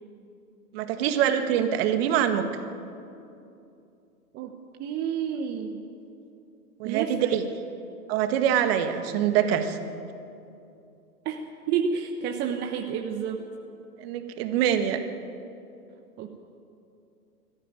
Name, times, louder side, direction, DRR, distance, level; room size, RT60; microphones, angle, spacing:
voice 1, 0.7-2.4 6.8-7.4 8.1-9.8 14.0-15.0, right 9 dB, 40° right, 7 dB, 1.8 m, -24 dB
voice 2, 4.8-5.8 6.8-7.4 11.2-13.5 16.2-16.4, right 7 dB, 20° right, 4 dB, 1.0 m, -30 dB
21.5 x 14.0 x 9.2 m, 2.7 s
hypercardioid pair, 125°, 46 cm